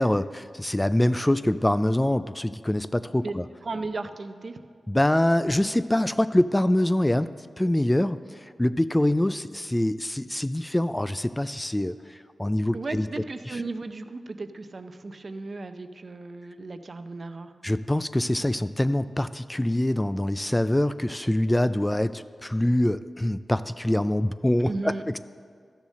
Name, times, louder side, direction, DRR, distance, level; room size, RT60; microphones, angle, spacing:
voice 1, 0.0-3.4 4.9-7.3 7.6-8.2 8.6-12.0 12.4-13.1 13.5-13.6 17.6-25.2, left 1 dB, 15° left, 13 dB, 0.3 m, -24 dB
voice 2, 3.6-4.6 12.7-17.5 24.6-25.0, right 3 dB, 50° right, 9 dB, 0.6 m, -35 dB
12.5 x 7.3 x 6.3 m, 2.1 s
cardioid pair, 55°, 0 cm